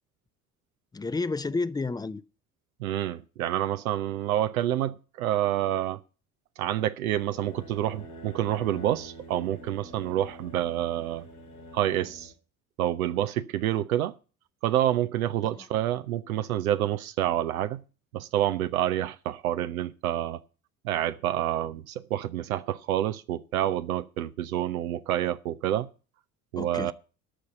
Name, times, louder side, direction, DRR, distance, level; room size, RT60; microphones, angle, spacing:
voice 1, 0.9-2.2 26.6-26.9, left 3 dB, 10° left, 0.5 m, -30 dB
voice 2, 2.8-6.0 6.6-11.2 11.7-12.3 12.8-14.1 14.6-17.8 18.1-20.4 20.8-25.9 26.5-26.9, right 12 dB, 75° right, 0.7 m, -28 dB
sound 1, 7.0-12.3, equal, 90° left, 2.3 m, -46 dB
13.0 x 5.4 x 7.8 m
figure-of-eight pair, 55°, 43 cm